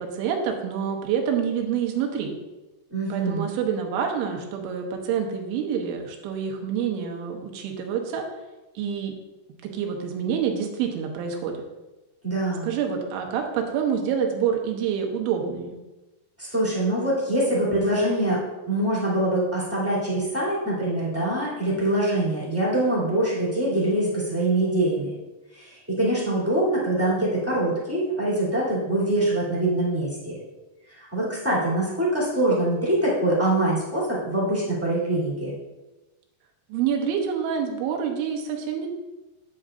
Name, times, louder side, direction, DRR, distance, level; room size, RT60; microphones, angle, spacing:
voice 1, 0.0-2.4 3.1-8.2 8.8-9.1 9.6-11.6 12.6-15.8 36.7-38.9, right 7 dB, 90° right, 3 dB, 3.4 m, -27 dB
voice 2, 2.9-3.4 12.2-12.7 16.4-25.1 25.5-30.4 30.9-35.5, right 1 dB, 5° right, -8 dB, 1.6 m, -24 dB
9.0 x 8.6 x 2.6 m, 1.1 s
omnidirectional pair, 5.3 m